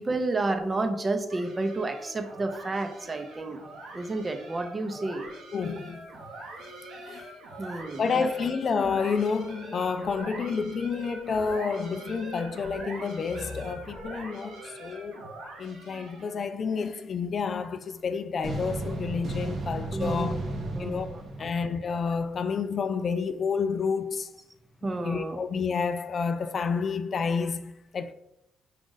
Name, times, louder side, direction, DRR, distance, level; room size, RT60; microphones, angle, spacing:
voice 1, 0.0-3.6 3.9-5.3 7.6-8.3 14.4-14.5 19.9-20.5 20.7-21.6 24.8-25.4, right 2 dB, 30° right, 0.6 m, -31 dB
sound 1, 1.3-16.4, right 2 dB, 85° right, 1.1 m, -43 dB
voice 2, 5.5-6.1 7.0-7.3 8.0-15.3 15.6-20.4 20.8-21.1 21.4-24.3 25.0-28.1, left 5 dB, 50° left, 0.3 m, -29 dB
sound 2, 18.4-22.4, right 2 dB, 60° right, 0.8 m, -34 dB
5.0 x 2.5 x 3.8 m
cardioid pair, 90°, 0 cm